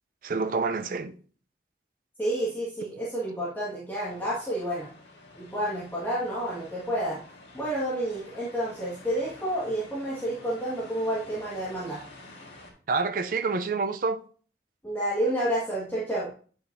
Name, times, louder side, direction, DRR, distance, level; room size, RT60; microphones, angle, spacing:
voice 1, 0.2-1.1 12.9-14.2, right 4 dB, 50° right, 0.5 m, -27 dB
voice 2, 2.2-4.9 5.4-7.2 7.5-12.0 14.8-16.3, right 1 dB, 10° left, 1.6 m, -30 dB
sound 1, 4.0-12.7, left 2 dB, 80° left, 1.8 m, -49 dB
8.3 x 5.6 x 2.6 m
head